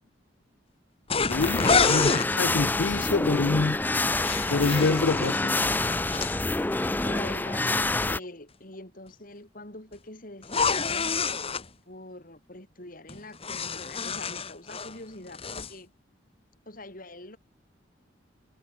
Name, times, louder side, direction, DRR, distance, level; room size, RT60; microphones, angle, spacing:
sound 1, 1.1-2.3 3.9-6.4 10.4-11.6 13.1-15.0 15.3-15.7, left 5 dB, 30° left, 2.0 m, -28 dB
voice 1, 1.3-2.1 2.4-3.8 4.5-5.5, left 3 dB, 80° left, 0.7 m, -26 dB
Big Broken Machine, 1.3-8.2, left 2 dB, 10° left, 0.4 m, -27 dB
voice 2, 7.0-11.2 11.9-15.9 16.7-17.4, left 2 dB, 45° left, 5.6 m, -44 dB
head